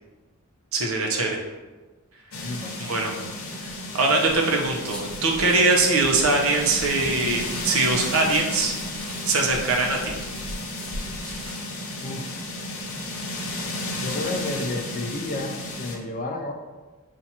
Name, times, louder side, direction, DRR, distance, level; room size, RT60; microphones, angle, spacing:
voice 1, 0.7-1.4 2.8-3.1 3.6-8.8 9.2-10.2, right 3 dB, 70° right, 0 dB, 0.7 m, -22 dB
sound 1, 2.3-16.0, left 1 dB, 75° left, 0.8 m, -33 dB
voice 2, 2.4-2.8 12.0-12.5 14.0-16.5, left 2 dB, 40° left, 3 dB, 0.4 m, -31 dB
sound 2, 3.2-11.7, equal, 5° left, 0.8 m, -41 dB
5.8 x 2.5 x 2.8 m, 1.3 s
head